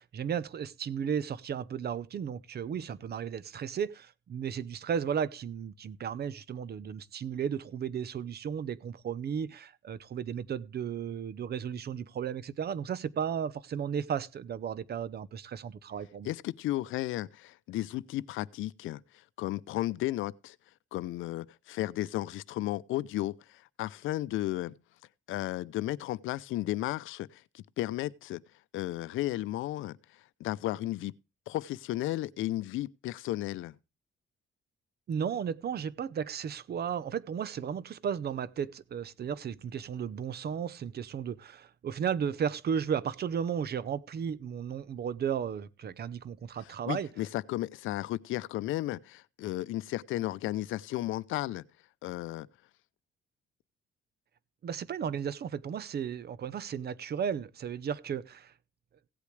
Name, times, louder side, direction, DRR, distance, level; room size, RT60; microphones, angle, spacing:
voice 1, 0.0-16.3 35.1-47.1 54.6-58.5, right 7 dB, 55° right, 0.8 m, -34 dB
voice 2, 16.2-19.0 19.4-20.6 20.9-24.7 25.3-28.4 28.7-30.0 30.4-31.1 31.5-33.7 46.8-51.7 52.0-52.5, left 15 dB, 85° left, 0.6 m, -34 dB
17.0 x 8.3 x 3.2 m
cardioid pair, 90°, 20 cm